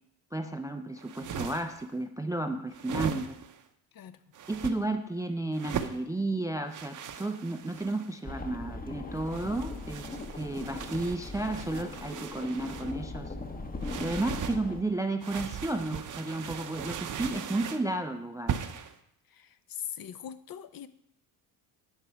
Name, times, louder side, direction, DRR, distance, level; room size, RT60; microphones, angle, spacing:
voice 1, 0.3-3.4 4.5-10.1 10.4-13.3 14.0-18.6, right 2 dB, 5° right, 7 dB, 0.4 m, -33 dB
sound 1, 1.0-1.8 2.7-3.6 4.3-4.8 5.5-6.0 6.7-8.2 9.1-12.9 13.8-14.6 15.2-17.9 18.5-18.9, right 8 dB, 40° right, 0.8 m, -38 dB
sound 2, 8.2-14.8, left 2 dB, 20° left, 0.9 m, -40 dB
voice 2, 19.3-20.9, left 9 dB, 45° left, 12 dB, 0.7 m, -41 dB
10.5 x 4.9 x 4.5 m, 0.75 s
supercardioid pair, 75°, 50 cm